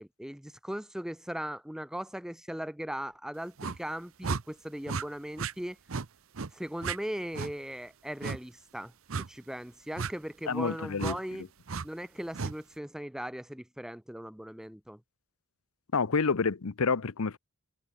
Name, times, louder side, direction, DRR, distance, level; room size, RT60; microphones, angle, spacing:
voice 1, 0.0-5.8 6.5-11.5 11.8-15.0, equal, ahead, 0.4 m, -39 dB
sound 1, 3.6-3.8 4.2-4.4 4.9-5.0 5.4-5.5 5.9-6.1 6.3-6.5 6.8-7.0 7.3-7.5 8.2-8.4 9.1-9.3 10.0-10.1 11.0-11.2 11.7-11.9 12.3-12.5, right 5 dB, 65° right, 0.8 m, -33 dB
voice 2, 10.5-11.2 15.9-17.4, left 4 dB, 70° left, 0.7 m, -28 dB
head